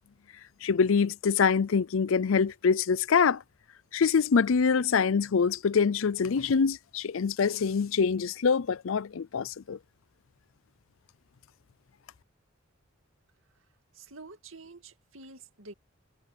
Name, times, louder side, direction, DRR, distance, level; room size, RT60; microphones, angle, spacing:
voice 1, 0.6-3.4 3.9-9.8, left 5 dB, 75° left, 0.5 m, -25 dB
voice 2, 13.9-15.7, right 3 dB, 70° right, 2.3 m, -48 dB
head